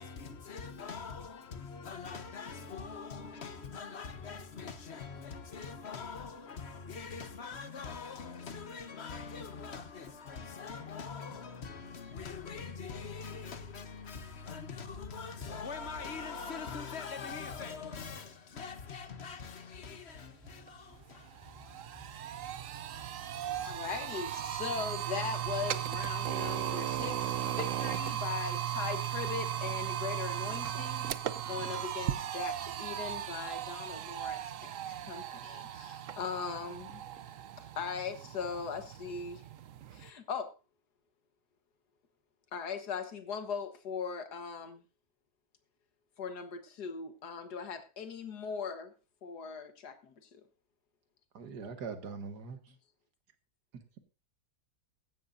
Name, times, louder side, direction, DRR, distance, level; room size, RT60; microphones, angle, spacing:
voice 1, 0.0-22.2 22.5-22.6, left 5 dB, 45° left, 1.2 m, -43 dB
sound 1, 20.1-34.3, right 1 dB, 15° right, 4.1 m, -59 dB
sound 2, 20.7-20.8 21.1-40.1, right 11 dB, 60° right, 1.0 m, -37 dB
voice 2, 23.6-31.0 31.5-37.0 37.8-39.4 39.9-40.5 42.5-44.8 46.2-48.9 49.2-50.3, left 6 dB, 80° left, 1.9 m, -39 dB
voice 3, 51.3-52.7 53.7-54.0, right 5 dB, 90° right, 2.1 m, -42 dB
16.0 x 12.0 x 2.6 m
omnidirectional pair, 1.7 m